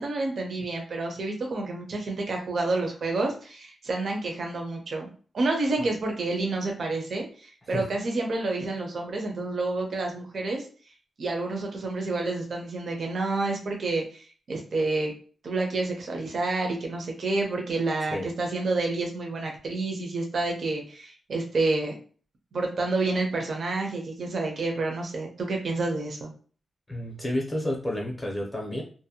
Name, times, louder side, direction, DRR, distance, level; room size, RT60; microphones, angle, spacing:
voice 1, 0.0-10.7 11.2-15.1 15.4-21.9 22.5-26.3, right 3 dB, 55° right, 1 dB, 0.5 m, -29 dB
voice 2, 26.9-28.8, left 1 dB, 15° left, 0 dB, 0.6 m, -30 dB
2.6 x 2.0 x 2.7 m, 0.41 s
wide cardioid pair, 160°, 0 cm